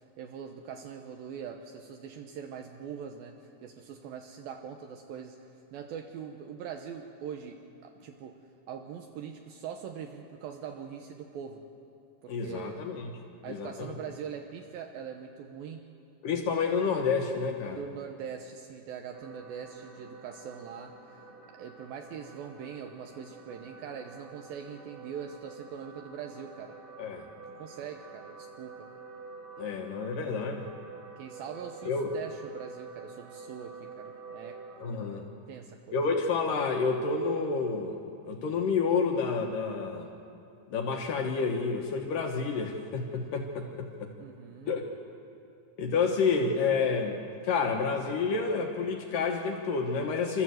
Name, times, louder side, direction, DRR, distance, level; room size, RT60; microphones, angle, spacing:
voice 1, 0.0-8.4 8.7-11.6 12.2-12.9 13.4-15.8 17.7-21.2 21.5-26.8 27.5-28.9 31.2-34.6 35.5-36.0 44.2-44.7, right 7 dB, 80° right, 4 dB, 2.1 m, -42 dB
voice 2, 12.3-13.1 13.5-13.9 16.2-17.8 27.0-27.3 29.6-30.7 31.9-32.1 34.8-35.3 35.9-38.0 38.3-40.1 40.7-44.1 44.7-44.8 45.8-50.4, left 5 dB, 75° left, 2 dB, 2.0 m, -29 dB
sound 1, 19.1-34.9, right 4 dB, 60° right, 3.8 m, -48 dB
28.5 x 13.5 x 7.8 m, 2.6 s
omnidirectional pair, 5.3 m